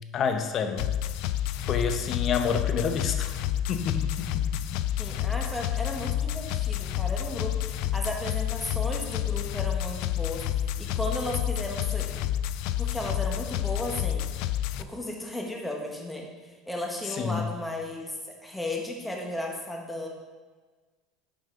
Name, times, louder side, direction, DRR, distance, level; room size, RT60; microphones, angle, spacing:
voice 1, 0.1-0.9 1.6-3.3 3.7-4.8 17.2-17.4, left 6 dB, 45° left, 7 dB, 0.8 m, -29 dB
sound 1, 0.8-14.8, left 11 dB, 65° left, 0.3 m, -29 dB
voice 2, 5.0-12.2 12.8-14.3 14.8-16.3 16.7-18.2 18.4-20.1, left 1 dB, 10° left, 0 dB, 1.2 m, -35 dB
8.8 x 5.2 x 3.9 m, 1.4 s
supercardioid pair, 95°, 0 cm